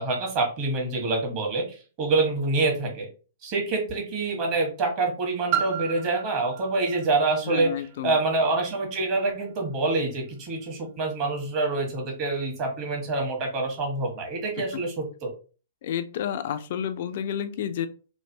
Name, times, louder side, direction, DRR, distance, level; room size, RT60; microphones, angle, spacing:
voice 1, 0.0-1.6 2.0-3.1 3.4-7.7 8.0-15.3, right 3 dB, 40° right, 1 dB, 1.4 m, -26 dB
Piano, 5.5-10.9 11.7-11.8, right 10 dB, 55° right, 0.7 m, -35 dB
voice 2, 7.5-8.2 14.7-14.8 15.8-17.9, left 9 dB, 55° left, 10 dB, 0.3 m, -30 dB
3.2 x 2.6 x 2.7 m, 0.35 s
figure-of-eight pair, 115°, 0 cm